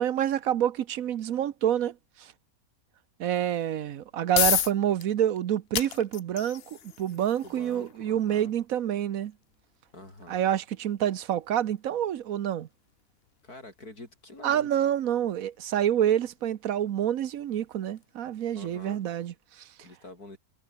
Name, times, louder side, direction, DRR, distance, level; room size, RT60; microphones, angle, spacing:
voice 1, 0.0-2.3 3.2-9.3 10.3-12.7 14.4-19.7, right 10 dB, 70° right, 1.2 m, -27 dB
sound 1, 3.9-18.7, left 9 dB, 50° left, 0.8 m, -36 dB
voice 2, 7.4-8.5 9.9-10.4 13.4-14.7 18.6-19.0 19.8-20.4, left 2 dB, 90° left, 7.3 m, -46 dB
omnidirectional pair, 1.6 m